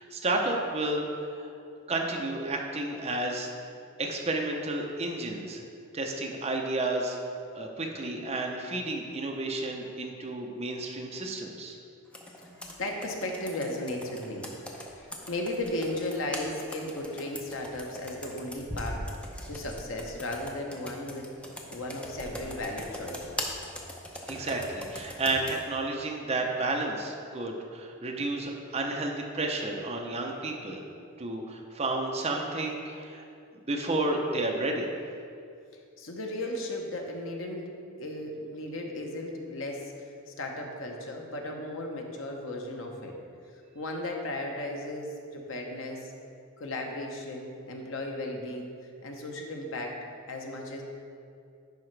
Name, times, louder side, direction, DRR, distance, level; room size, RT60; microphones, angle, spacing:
voice 1, 0.0-1.5 1.9-3.5 4.0-5.6 5.9-7.2 7.5-11.8 24.3-30.8 31.2-33.2 33.7-34.9, right 2 dB, 30° right, 1 dB, 0.7 m, -31 dB
Computer keyboard, 12.1-25.6, left 1 dB, 5° left, 0.6 m, -41 dB
voice 2, 12.8-14.5 15.0-19.1 19.5-21.3 21.7-23.4 36.0-37.7 38.0-43.1 43.7-46.1 46.6-48.7 49.0-50.0 50.3-50.8, left 1 dB, 65° left, 1 dB, 0.9 m, -35 dB
10.5 x 4.8 x 3.3 m, 2.5 s
head